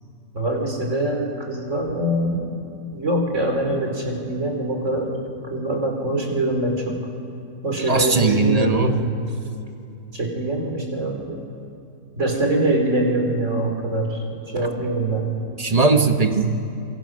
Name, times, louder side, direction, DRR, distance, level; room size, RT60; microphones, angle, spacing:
voice 1, 0.3-2.4 2.9-5.1 5.5-7.0 7.6-9.1 10.1-11.4 12.2-14.2 14.5-15.3, right 1 dB, 50° right, 1 dB, 3.9 m, -23 dB
voice 2, 7.9-9.0 15.6-16.6, right 3 dB, 30° right, 6 dB, 1.0 m, -19 dB
26.0 x 22.5 x 6.2 m, 2.7 s
omnidirectional pair, 1.6 m